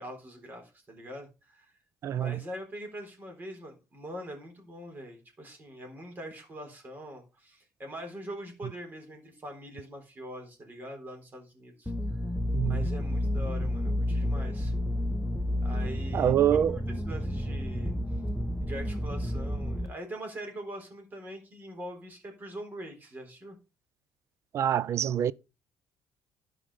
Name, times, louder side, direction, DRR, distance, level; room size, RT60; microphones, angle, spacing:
voice 1, 0.0-1.7 2.0-11.9 12.6-14.7 15.6-17.9 18.6-23.6, equal, 30° right, 3.9 m, -43 dB
voice 2, 2.0-2.4 12.5-12.9 16.1-16.8 24.5-25.3, right 10 dB, 55° right, 0.5 m, -25 dB
sound 1, 11.9-19.9, left 1 dB, ahead, 1.0 m, -30 dB
11.5 x 5.1 x 4.9 m
cardioid pair, 110°, 6 cm